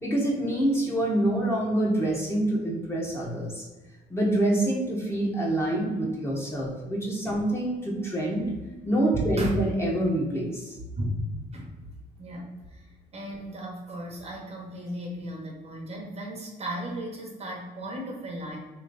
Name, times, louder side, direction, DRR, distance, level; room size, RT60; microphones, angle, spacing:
voice 1, 0.0-3.6 4.1-8.5 8.8-10.7, right 1 dB, 15° left, -3 dB, 1.2 m, -26 dB
voice 2, 9.1-9.5 11.0-11.7 12.2-12.9 13.1-18.6, right 1 dB, 40° right, 0 dB, 1.0 m, -35 dB
3.2 x 2.9 x 3.9 m, 1.2 s
cardioid pair, 110°, 17 cm